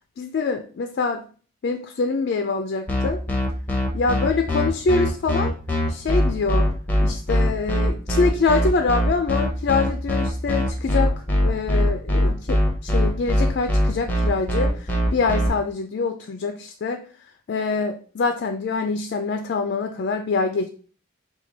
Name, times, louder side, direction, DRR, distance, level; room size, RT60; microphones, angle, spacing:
voice 1, 0.2-1.3 1.6-3.2 3.9-5.5 5.9-6.7 7.0-11.1 11.4-17.0 17.5-20.7, left 4 dB, 55° left, 6 dB, 0.3 m, -25 dB
sound 1, 2.9-15.5, equal, 10° left, 0.7 m, -21 dB
4.4 x 2.3 x 3.9 m, 0.42 s
head